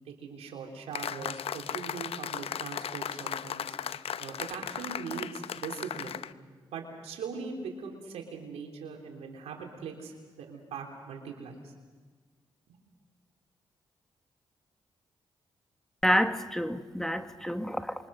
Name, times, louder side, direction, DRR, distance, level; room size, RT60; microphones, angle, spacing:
voice 1, 0.1-3.8 4.2-6.2 6.7-11.7 12.7-12.8, right 5 dB, 80° right, 3.5 m, -41 dB
sound 1, 0.9-6.3, left 9 dB, 65° left, 0.7 m, -36 dB
voice 2, 16.0-18.1, equal, 5° left, 1.3 m, -28 dB
27.0 x 23.5 x 6.5 m
supercardioid pair, 45°, 11 cm